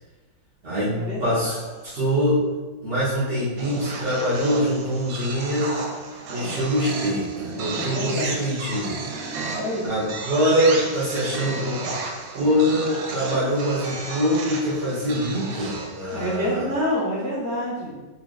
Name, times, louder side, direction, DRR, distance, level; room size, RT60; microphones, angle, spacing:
voice 1, 0.6-1.6 1.8-2.4 2.8-5.8 6.3-9.0 9.8-11.8 12.3-16.7, equal, 55° right, -10 dB, 0.7 m, -24 dB
sound 1, 1.3-2.0 3.6-16.5, right 3 dB, 75° right, 1.3 m, -33 dB
voice 2, 7.7-8.6 9.3-9.9 15.5-15.7 16.1-18.0, equal, 30° right, -7 dB, 1.1 m, -28 dB
3.3 x 2.4 x 3.7 m, 1.2 s
omnidirectional pair, 2.1 m